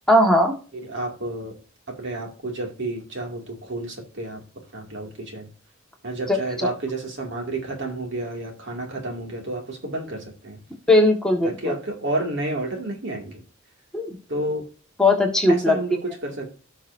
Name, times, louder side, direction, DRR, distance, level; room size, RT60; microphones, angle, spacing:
voice 1, 0.1-0.5 6.3-6.4 10.9-11.7 13.9-14.2 15.0-15.8, left 1 dB, 5° left, 0 dB, 1.6 m, -18 dB
voice 2, 0.7-1.6 1.9-4.4 4.7-5.5 6.0-10.6 11.4-13.4 14.3-14.7 15.5-16.5, right 2 dB, 60° right, 2 dB, 2.4 m, -30 dB
17.5 x 6.1 x 2.7 m, 0.36 s
head